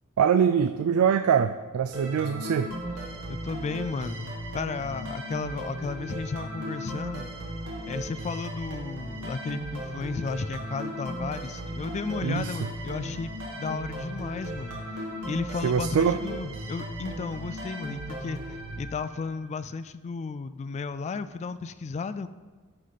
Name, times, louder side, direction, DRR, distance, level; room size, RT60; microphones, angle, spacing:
voice 1, 0.2-2.7 12.2-12.7 15.6-16.2, right 7 dB, 75° right, 9 dB, 0.3 m, -24 dB
sound 1, 1.9-19.5, right 1 dB, 90° right, 2.1 m, -36 dB
voice 2, 3.3-4.2 4.5-7.3 7.8-14.8 15.3-22.3, left 4 dB, 30° left, 13 dB, 0.3 m, -34 dB
13.0 x 5.0 x 4.1 m, 1.4 s
head